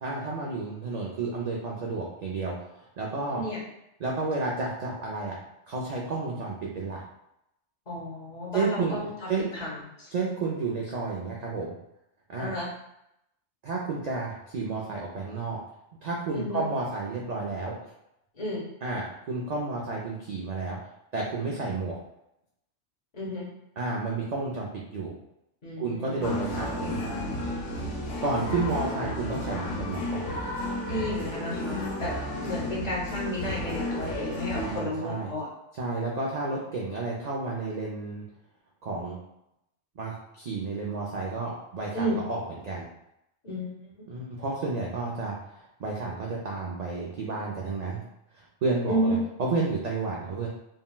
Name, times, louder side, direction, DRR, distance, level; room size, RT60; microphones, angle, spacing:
voice 1, 0.0-2.5 3.0-3.4 4.0-5.4 5.7-7.0 8.5-9.0 9.3-9.4 10.1-11.7 12.3-12.5 13.6-15.6 16.0-17.7 18.8-20.8 21.1-22.0 23.8-25.1 25.8-27.0 28.2-30.3 34.6-35.3 35.8-38.2 38.8-39.2 40.0-42.9 44.1-48.0 48.3-50.5, right 3 dB, 60° right, -3 dB, 0.4 m, -31 dB
voice 2, 3.3-3.6 7.9-10.1 12.4-12.7 16.3-16.6 18.3-18.6 23.1-23.5 25.6-26.5 28.5-28.6 30.9-32.2 32.4-35.5 41.9-42.2 43.4-44.0 48.9-49.3, equal, 40° left, -4 dB, 0.8 m, -32 dB
sound 1, 26.2-34.8, left 1 dB, 85° left, 1.0 m, -32 dB
3.7 x 2.1 x 2.2 m, 0.83 s
omnidirectional pair, 1.2 m